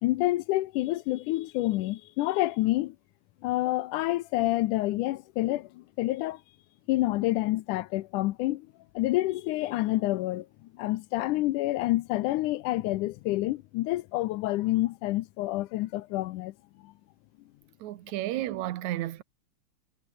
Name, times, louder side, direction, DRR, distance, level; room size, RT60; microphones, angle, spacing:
voice 1, 0.0-3.0 3.4-6.4 6.9-8.7 9.0-10.5 10.8-16.5 16.8-16.9, left 17 dB, 80° left, 2.2 m, -28 dB
voice 2, 17.8-19.2, right 14 dB, 70° right, 2.3 m, -32 dB
omnidirectional pair, 3.7 m